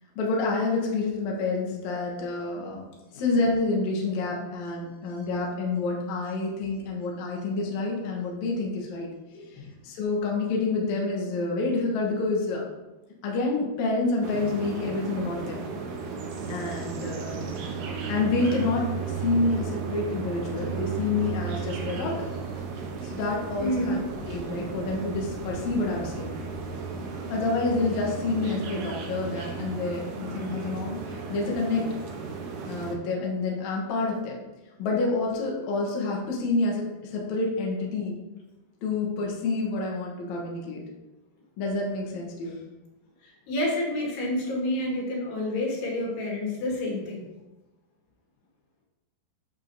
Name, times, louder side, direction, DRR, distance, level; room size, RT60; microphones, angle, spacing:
voice 1, 0.2-2.9 3.1-9.1 9.3-12.7 13.2-15.7 16.5-17.5 18.1-22.3 23.0-24.0 24.3-26.3 27.3-31.9 32.7-34.4 34.8-38.2 38.8-40.8 41.6-42.6, left 3 dB, 65° left, -2 dB, 1.9 m, -28 dB
sound 1, 14.2-32.9, right 5 dB, 75° right, 1.8 m, -34 dB
voice 2, 23.6-24.0 43.2-47.3, left 1 dB, 85° left, -2 dB, 3.8 m, -29 dB
8.5 x 6.8 x 2.7 m, 1.1 s
omnidirectional pair, 4.6 m